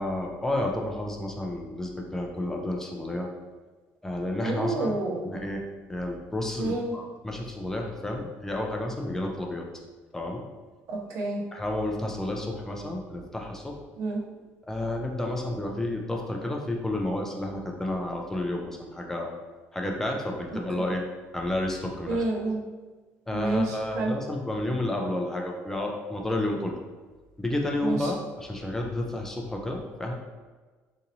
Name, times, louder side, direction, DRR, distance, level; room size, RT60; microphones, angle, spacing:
voice 1, 0.0-3.3 4.0-4.9 5.2-5.6 5.9-9.7 10.1-10.5 11.5-13.8 14.7-19.4 19.7-21.0 21.3-22.2 23.3-26.8 27.4-30.1, left 1 dB, 10° left, 1 dB, 0.4 m, -31 dB
voice 2, 4.4-5.3 6.6-6.9 10.9-11.4 14.0-14.2 20.8-20.9 22.1-22.6 23.3-24.2 27.8-28.1, right 2 dB, 65° right, -2 dB, 0.6 m, -29 dB
4.0 x 2.7 x 2.6 m, 1.3 s
cardioid pair, 155°, 5 cm